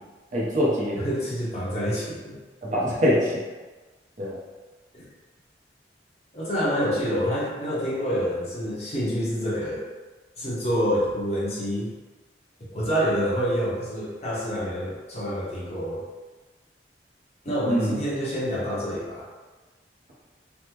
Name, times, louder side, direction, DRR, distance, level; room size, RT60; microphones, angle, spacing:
voice 1, 0.3-1.0 2.6-3.3 4.2-4.4 17.7-17.9, equal, 40° right, -5 dB, 0.7 m, -23 dB
voice 2, 1.0-2.4 4.9-5.1 6.3-9.8 10.4-11.9 12.7-16.0 17.4-19.3, equal, 35° left, -7 dB, 0.8 m, -27 dB
3.5 x 2.1 x 2.9 m, 1.3 s
head